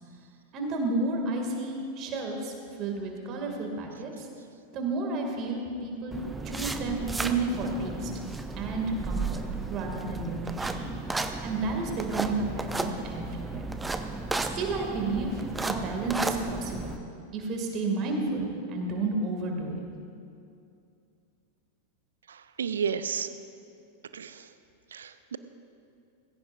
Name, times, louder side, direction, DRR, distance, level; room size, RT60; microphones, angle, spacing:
voice 1, 0.5-4.3 4.7-6.2 6.4-8.1 8.6-10.9 11.4-13.6 14.4-17.0 17.3-19.8, right 3 dB, 35° right, 1 dB, 2.4 m, -31 dB
sound 1, 6.1-17.0, right 3 dB, 10° right, 0.7 m, -34 dB
voice 2, 22.3-23.3 24.1-24.5 24.9-25.4, right 7 dB, 65° right, 12 dB, 0.6 m, -32 dB
20.0 x 16.5 x 2.6 m, 2.6 s
figure-of-eight pair, 90°, 0 cm